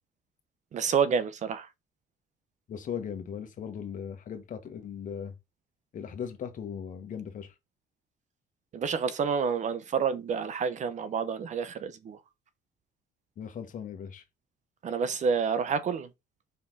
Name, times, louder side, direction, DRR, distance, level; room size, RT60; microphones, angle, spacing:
voice 1, 0.7-1.7 8.7-12.2 14.8-16.1, right 6 dB, 45° right, 0.8 m, -28 dB
voice 2, 2.7-5.3 5.9-7.5 13.4-14.2, left 8 dB, 50° left, 1.5 m, -38 dB
5.3 x 4.3 x 4.1 m
cardioid pair, 110°, 17 cm